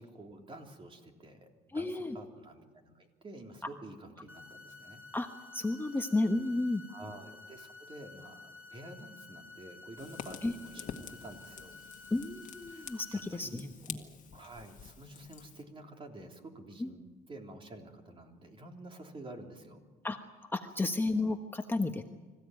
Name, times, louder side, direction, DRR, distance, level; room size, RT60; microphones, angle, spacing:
voice 1, 0.0-5.0 6.9-11.8 12.7-13.7 13.9-19.8, right 1 dB, 30° right, 3 dB, 3.4 m, -49 dB
voice 2, 1.7-2.2 5.1-6.8 10.4-10.5 12.1-14.0 16.8-16.9 20.0-20.2 20.5-22.0, left 2 dB, 10° left, 5 dB, 1.1 m, -32 dB
sound 1, 4.3-13.3, left 3 dB, 10° right, 6.4 m, -52 dB
Fire, 10.0-15.6, left 8 dB, 50° left, 1.7 m, -48 dB
26.0 x 15.5 x 9.3 m, 1.4 s
cardioid pair, 110°, 17 cm